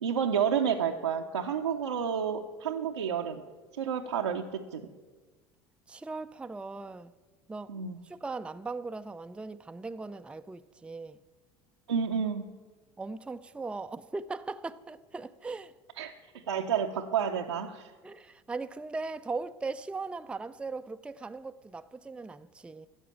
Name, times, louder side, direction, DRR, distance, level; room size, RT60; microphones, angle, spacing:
voice 1, 0.0-3.4 3.8-4.8 7.7-8.0 11.9-12.5 16.0-16.1 16.5-17.9, right 7 dB, 85° right, 0.7 m, -30 dB
voice 2, 5.9-7.1 7.5-7.8 8.0-11.2 13.0-15.7 18.0-22.9, right 3 dB, 5° right, 0.4 m, -39 dB
14.0 x 8.1 x 7.4 m
figure-of-eight pair, 70°, 14 cm